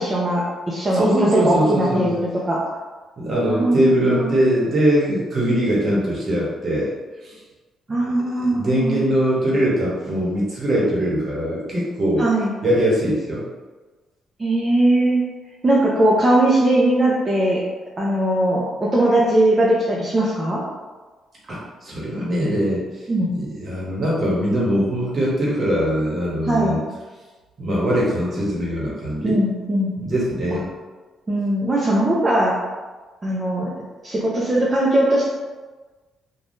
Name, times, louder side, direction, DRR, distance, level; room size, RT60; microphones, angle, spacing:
voice 1, 0.0-2.2 2.5-2.6 3.5-4.3 7.9-9.1 12.2-12.5 14.4-15.2 15.6-17.6 18.0-20.6 23.1-23.3 26.4-26.8 29.2-29.9 31.3-32.6 33.2-33.7 34.0-35.3, right 1 dB, 25° right, -5 dB, 0.6 m, -19 dB
voice 2, 0.9-2.1 3.2-6.9 7.2-7.4 8.4-12.3 12.6-13.4 21.5-22.8 23.3-26.8 27.6-29.4 30.0-30.6, equal, 40° right, -5 dB, 1.1 m, -21 dB
3.3 x 2.3 x 2.6 m, 1.3 s
cardioid pair, 90°, 0 cm